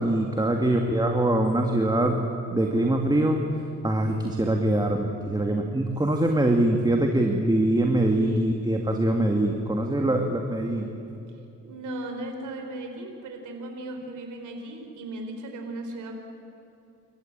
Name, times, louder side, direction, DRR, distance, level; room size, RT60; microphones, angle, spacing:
voice 1, 0.0-10.9, right 1 dB, 15° right, 3 dB, 2.0 m, -23 dB
voice 2, 8.2-8.5 11.6-16.1, right 2 dB, 80° right, 4 dB, 4.0 m, -37 dB
28.0 x 14.5 x 8.8 m, 2.7 s
cardioid pair, 90°, 30 cm